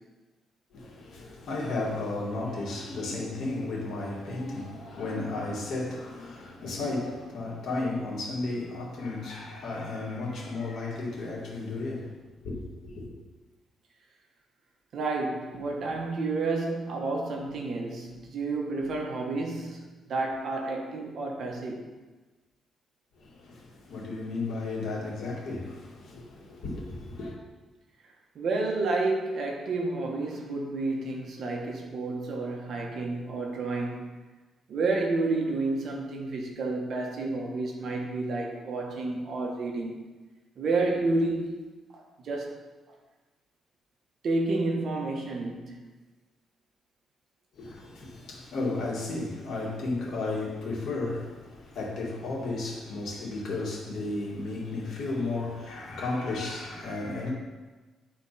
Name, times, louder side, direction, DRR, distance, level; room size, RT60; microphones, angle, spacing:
voice 1, 0.7-12.1 12.4-13.1 23.2-27.4 47.6-57.3, left 2 dB, 65° left, 2.4 m, -34 dB
voice 2, 14.9-21.9 28.3-34.1 34.7-40.0 40.6-41.5 41.9-42.6 44.2-45.8, right 3 dB, 60° right, 1.3 m, -30 dB
11.0 x 4.4 x 4.2 m
cardioid pair, 125°, 0 cm